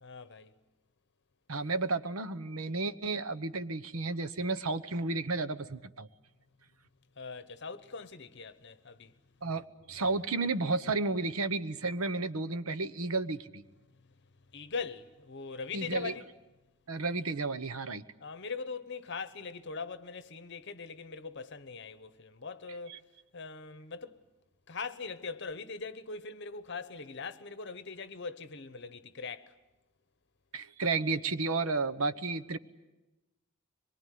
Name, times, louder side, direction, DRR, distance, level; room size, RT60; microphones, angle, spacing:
voice 1, 0.0-0.5 7.2-9.1 14.0-14.1 14.5-16.3 18.2-23.0 23.3-24.2 24.7-29.5, left 4 dB, 55° left, 1.1 m, -41 dB
voice 2, 1.5-6.1 9.4-9.6 9.9-13.6 15.7-16.1 16.9-18.0 22.9-23.0 30.5-32.6, right 3 dB, 85° right, 1.1 m, -32 dB
24.5 x 22.5 x 9.4 m
head